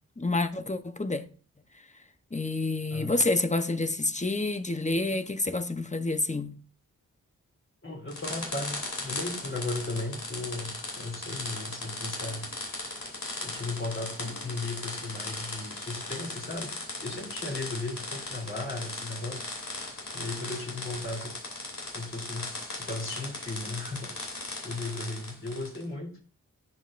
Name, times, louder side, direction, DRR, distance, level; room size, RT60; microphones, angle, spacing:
voice 1, 0.2-1.3 2.3-6.5, left 2 dB, 20° left, 0.9 m, -28 dB
voice 2, 7.8-12.5 13.4-16.7 17.0-19.5 20.1-21.3 21.9-24.1 24.6-26.2, left 2 dB, 35° left, 3.3 m, -36 dB
sound 1, 8.1-25.8, left 2 dB, 70° left, 3.0 m, -38 dB
10.5 x 7.6 x 2.6 m
cardioid pair, 45°, 34 cm